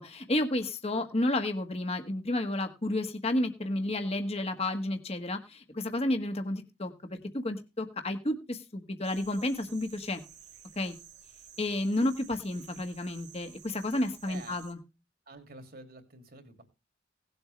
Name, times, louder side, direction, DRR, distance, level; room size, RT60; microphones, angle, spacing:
voice 1, 0.0-10.2 10.8-10.9 11.6-14.8, left 1 dB, 35° left, 6 dB, 1.5 m, -31 dB
sound 1, 9.0-14.7, right 8 dB, 85° right, 2.2 m, -53 dB
voice 2, 14.2-14.6 15.3-16.6, right 2 dB, 60° right, 7 dB, 2.7 m, -49 dB
18.0 x 8.0 x 3.3 m, 0.28 s
head